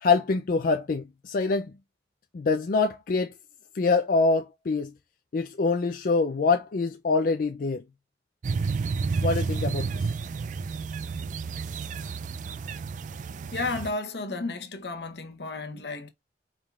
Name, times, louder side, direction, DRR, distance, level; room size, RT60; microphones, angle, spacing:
voice 1, 0.0-1.7 2.3-3.3 3.7-4.9 5.3-7.8 9.2-10.1, left 4 dB, 50° left, 0.4 m, -25 dB
sound 1, 8.4-13.9, right 4 dB, 45° right, 0.3 m, -31 dB
voice 2, 13.5-16.1, left 3 dB, 65° left, 0.9 m, -33 dB
5.1 x 3.5 x 2.4 m
head